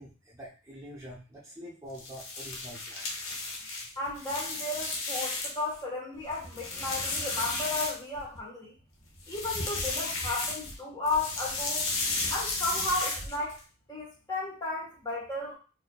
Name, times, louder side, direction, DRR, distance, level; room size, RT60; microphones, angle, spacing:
voice 1, 0.0-3.1 9.1-9.2, equal, 15° right, -5 dB, 0.6 m, -46 dB
sound 1, 1.9-5.7 6.1-8.4 9.2-10.8 11.0-13.6, left 2 dB, 85° left, 0.9 m, -34 dB
voice 2, 4.0-8.7 9.3-11.9 12.3-13.6 13.9-15.5, left 2 dB, 20° left, -4 dB, 1.1 m, -34 dB
4.2 x 2.7 x 2.2 m, 0.35 s
head